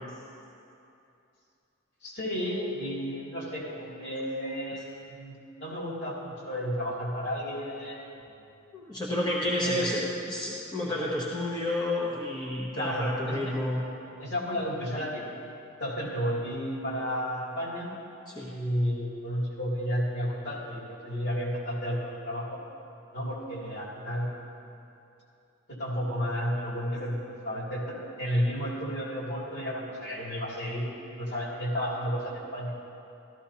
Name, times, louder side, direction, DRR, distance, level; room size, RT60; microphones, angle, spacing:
voice 1, 2.0-8.4 9.6-9.9 12.7-13.4 14.2-15.3 15.8-17.9 18.5-22.6 23.1-24.3 25.7-32.7, equal, 55° left, -5 dB, 2.7 m, -32 dB
voice 2, 8.7-13.8 18.3-18.5, left 1 dB, 20° left, -6 dB, 1.0 m, -30 dB
14.0 x 13.5 x 2.8 m, 2.7 s
head